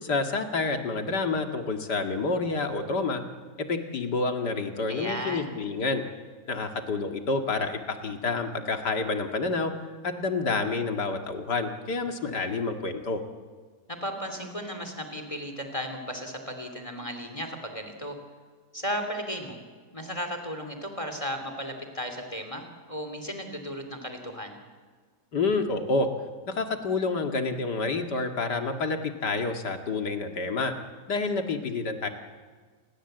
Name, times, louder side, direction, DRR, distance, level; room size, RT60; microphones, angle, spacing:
voice 1, 0.0-3.2 3.6-6.0 6.5-9.7 10.0-13.2 25.3-26.1 26.5-30.7 31.1-32.1, left 3 dB, 90° left, 5 dB, 2.6 m, -28 dB
voice 2, 4.9-5.5 13.9-18.2 18.7-19.6 19.9-24.6, equal, 20° left, 6 dB, 3.1 m, -35 dB
29.0 x 21.0 x 8.0 m, 1.5 s
omnidirectional pair, 1.7 m